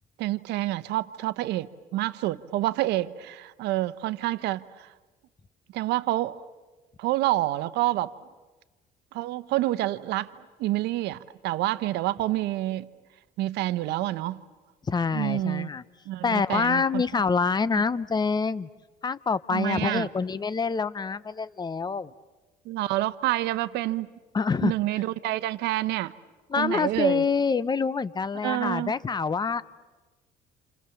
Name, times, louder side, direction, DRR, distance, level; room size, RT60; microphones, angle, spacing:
voice 1, 0.2-4.9 5.7-6.4 7.0-8.1 9.1-10.3 10.6-12.9 13.4-14.4 15.1-15.7 16.1-17.2 17.7-17.8 19.5-20.1 22.6-24.1 24.6-26.1 26.6-27.2 28.4-28.9, right 16 dB, 85° right, 0.9 m, -28 dB
voice 2, 14.9-15.8 16.2-18.7 19.0-22.1 24.3-24.7 26.5-29.6, left 5 dB, 25° left, 0.9 m, -26 dB
29.5 x 28.0 x 7.1 m
cardioid pair, 110°, 17 cm